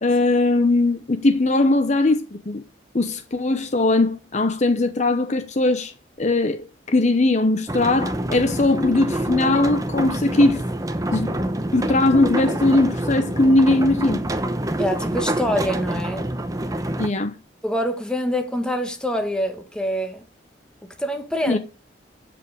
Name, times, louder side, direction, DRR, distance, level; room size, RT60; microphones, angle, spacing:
voice 1, 0.0-2.6 2.9-5.9 6.2-10.6 11.1-11.3 11.7-14.2 17.0-17.3 21.5-21.6, left 2 dB, 40° left, 0.8 m, -20 dB
sound 1, 7.7-17.1, right 1 dB, 20° right, 0.9 m, -26 dB
voice 2, 14.8-16.3 17.6-20.2 20.8-21.6, equal, 5° left, 1.4 m, -25 dB
11.0 x 5.2 x 8.5 m
head